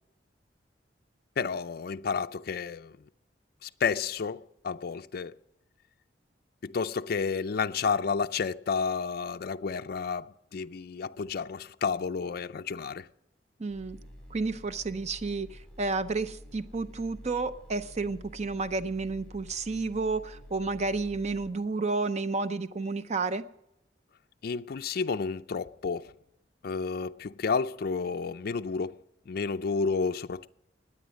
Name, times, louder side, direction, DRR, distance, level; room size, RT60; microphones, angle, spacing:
voice 1, 1.4-3.0 3.6-5.3 6.6-13.1 24.4-26.1 26.6-30.5, left 5 dB, 55° left, 0.4 m, -31 dB
voice 2, 13.6-14.0 14.3-23.4, right 3 dB, 40° right, 0.6 m, -31 dB
sound 1, 13.7-21.5, equal, 5° left, 5.6 m, -49 dB
19.5 x 8.8 x 6.2 m
head